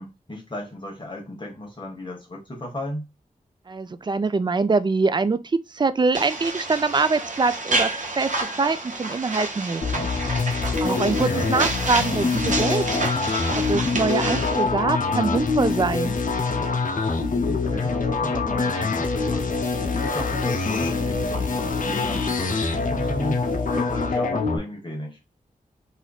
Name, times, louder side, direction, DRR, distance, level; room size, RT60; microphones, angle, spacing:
voice 1, 0.0-3.1 11.2-11.5 12.1-12.2 17.4-19.5 19.9-25.2, left 1 dB, 35° left, 1.1 m, -35 dB
voice 2, 3.7-10.5 10.8-12.8 13.2-16.2, right 4 dB, 30° right, 0.3 m, -24 dB
sound 1, 6.1-14.6, right 2 dB, 60° right, 1.0 m, -29 dB
sound 2, 9.8-24.6, left 4 dB, 65° left, 0.6 m, -25 dB
4.1 x 2.5 x 2.3 m
wide cardioid pair, 85°, 15 cm